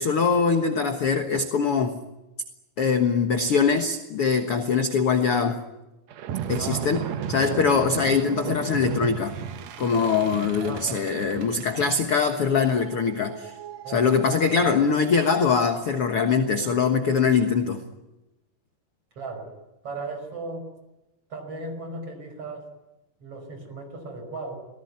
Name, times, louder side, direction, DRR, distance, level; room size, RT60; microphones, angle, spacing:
voice 1, 0.0-2.0 2.8-5.6 6.5-9.3 9.8-13.5 13.9-17.8, left 5 dB, 55° left, 6 dB, 1.6 m, -23 dB
sound 1, 6.1-16.7, right 8 dB, 75° right, 1.6 m, -36 dB
voice 2, 6.6-7.1 10.5-11.0 13.8-14.7 19.2-19.6 19.8-20.7 21.3-22.7 23.2-24.6, right 3 dB, 35° right, 5 dB, 6.2 m, -37 dB
27.0 x 19.0 x 9.6 m, 1.0 s
omnidirectional pair, 4.5 m